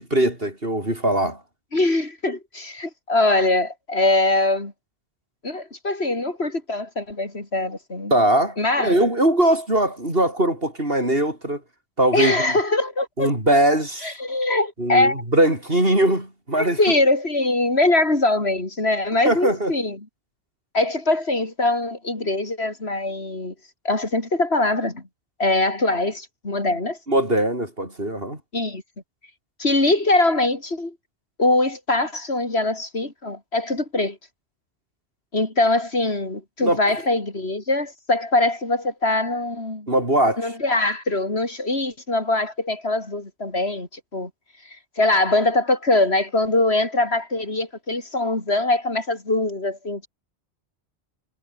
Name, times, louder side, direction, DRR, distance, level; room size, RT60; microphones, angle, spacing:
voice 1, 0.0-1.4 8.1-11.6 12.0-12.5 13.2-14.2 14.8-16.8 19.2-19.7 27.1-28.4 36.6-36.8 39.9-40.5, right 1 dB, 65° right, 8.0 m, -21 dB
voice 2, 1.7-4.7 5.4-8.1 8.6-9.0 12.1-13.3 14.0-15.2 16.6-20.1 20.7-23.5 23.8-25.0 25.4-27.0 28.5-28.8 29.6-31.0 31.4-34.2 35.3-39.9 40.4-44.3 45.0-50.1, left 2 dB, 80° left, 4.7 m, -22 dB
omnidirectional pair, 1.1 m